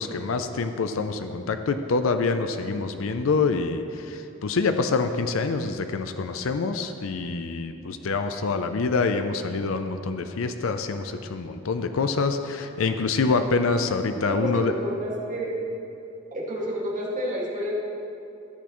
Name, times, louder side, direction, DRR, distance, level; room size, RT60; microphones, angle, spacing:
voice 1, 0.0-14.7, left 4 dB, 75° left, 8 dB, 0.5 m, -26 dB
voice 2, 14.3-15.6 16.3-17.7, equal, 40° right, -5 dB, 2.0 m, -29 dB
13.5 x 8.4 x 3.1 m, 2.9 s
head